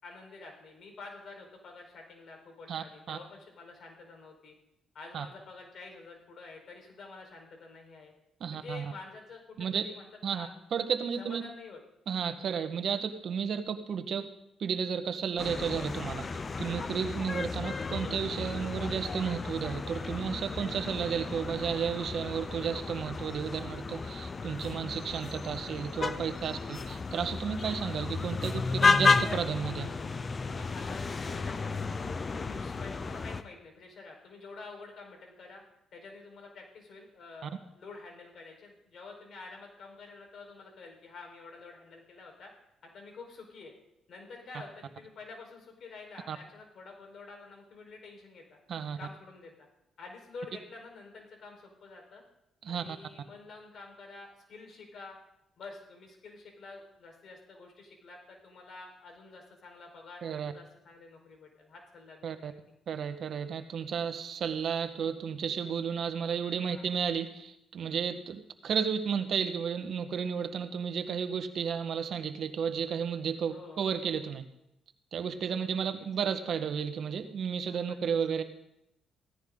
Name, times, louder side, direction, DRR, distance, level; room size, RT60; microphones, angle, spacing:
voice 1, 0.0-4.5 4.9-8.1 8.5-10.5 11.2-11.8 28.4-28.9 30.5-31.9 32.4-35.6 35.9-42.5 42.8-43.7 44.1-48.6 49.0-49.7 50.0-52.2 52.7-55.2 55.6-62.5 66.6-66.9 73.5-73.8 75.5-75.9 77.7-78.0, left 3 dB, 60° left, 2 dB, 4.6 m, -48 dB
voice 2, 2.7-3.2 5.1-5.2 8.4-8.9 9.6-9.8 10.2-11.4 12.1-14.3 14.6-16.3 16.6-28.5 28.8-29.9 37.4-37.5 46.3-46.4 48.7-49.0 52.6-53.0 60.2-60.5 62.2-62.5 62.9-74.4 75.1-78.4, right 7 dB, 60° right, 8 dB, 1.4 m, -33 dB
sound 1, 15.4-33.4, left 4 dB, 35° left, 0.8 m, -33 dB
16.5 x 14.5 x 3.9 m, 0.82 s
cardioid pair, 90°, 0 cm